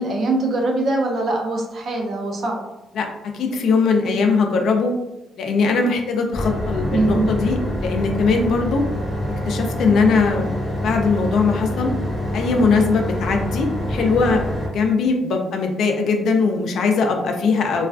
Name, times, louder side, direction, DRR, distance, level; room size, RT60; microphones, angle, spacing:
voice 1, 0.0-2.6 6.9-7.3, right 2 dB, 60° right, 1 dB, 0.5 m, -22 dB
voice 2, 2.9-4.9 5.4-8.8 9.3-10.5 10.8-11.9 12.3-14.4 14.7-17.9, left 4 dB, 70° left, 3 dB, 0.4 m, -20 dB
sound 1, 6.3-14.7, left 1 dB, 10° left, 0.7 m, -26 dB
2.3 x 2.3 x 2.4 m, 0.95 s
cardioid pair, 90°, 0 cm